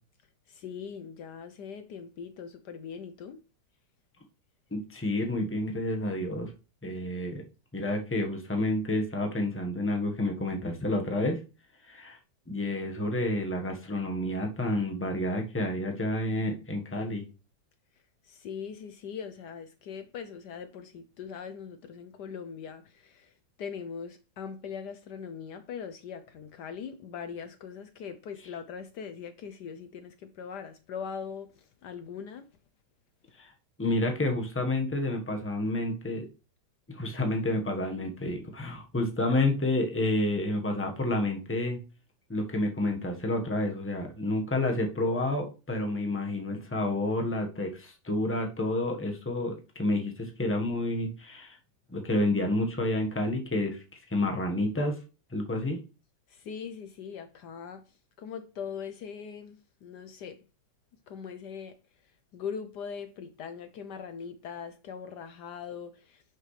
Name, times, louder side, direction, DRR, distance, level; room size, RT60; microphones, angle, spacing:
voice 1, 0.5-3.4 18.3-23.3 23.6-32.5 39.3-39.4 56.3-57.8 58.2-60.4 61.1-61.8 62.3-66.2, left 7 dB, 70° left, 1.2 m, -41 dB
voice 2, 4.7-6.5 6.8-7.4 7.7-11.4 11.8-12.2 12.5-17.2 33.4-33.5 33.8-36.3 36.9-41.8 42.3-51.6 51.9-53.8 54.1-55.0 55.3-55.8, left 1 dB, 10° left, 1.2 m, -29 dB
10.5 x 5.6 x 3.3 m
omnidirectional pair, 2.0 m